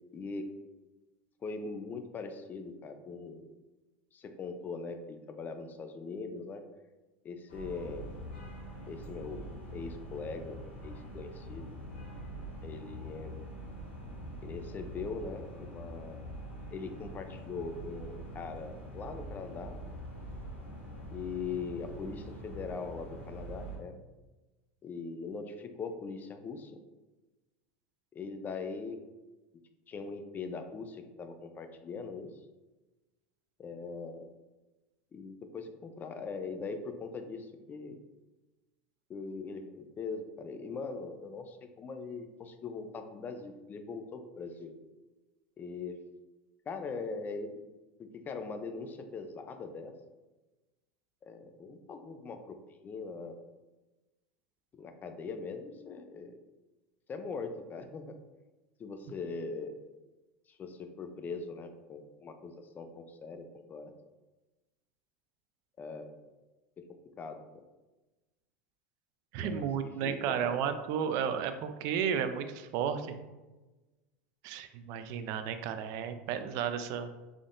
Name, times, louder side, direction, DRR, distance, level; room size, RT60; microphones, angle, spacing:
voice 1, 0.1-0.5 1.4-3.5 4.1-6.6 7.2-8.1 8.9-11.7 12.6-13.4 14.4-16.2 16.7-19.8 21.1-24.0 24.8-26.8 28.1-29.0 29.9-32.3 33.6-34.3 35.1-38.0 39.1-44.7 45.6-46.0 46.7-47.6 48.0-49.9 51.2-52.6 52.8-53.4 54.7-56.4 57.1-58.2 58.8-59.8 60.5-63.9 65.8-66.2 66.8-67.6 69.4-70.6, left 4 dB, 30° left, 7 dB, 0.4 m, -41 dB
sound 1, 7.5-23.8, equal, 80° left, 1.0 m, -44 dB
voice 2, 69.3-73.1 74.4-77.1, right 8 dB, 60° right, 9 dB, 0.4 m, -33 dB
3.6 x 3.5 x 2.5 m, 1.1 s
hypercardioid pair, 100°, 6 cm